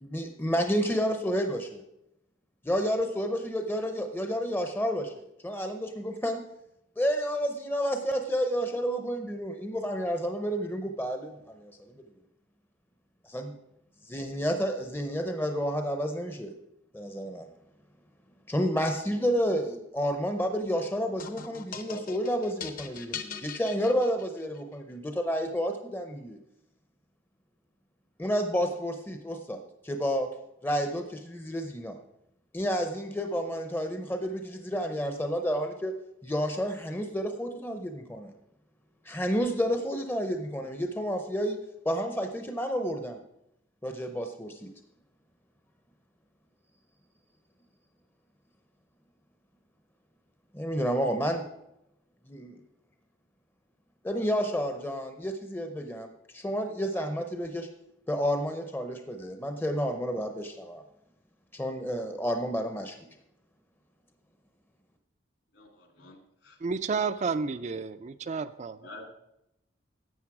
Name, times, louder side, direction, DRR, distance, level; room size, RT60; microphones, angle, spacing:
voice 1, 0.0-1.8 2.7-5.1 5.4-6.4 7.0-11.3 11.6-11.7 13.3-13.5 14.1-16.5 16.9-17.4 18.5-26.4 28.2-29.6 29.8-30.3 30.6-31.9 32.5-35.9 36.2-38.3 39.1-41.6 41.8-43.2 43.8-44.7 50.5-51.4 52.3-52.6 54.0-56.1 56.3-57.7 58.1-60.8 61.5-63.0, equal, 10° left, 0.6 m, -30 dB
sound 1, 21.2-24.6, left 6 dB, 45° left, 0.8 m, -41 dB
voice 2, 65.5-66.2 66.4-66.6 68.8-69.0, left 2 dB, 65° left, 2.3 m, -47 dB
voice 3, 66.6-68.8, right 4 dB, 35° right, 0.3 m, -31 dB
12.0 x 7.9 x 4.8 m
head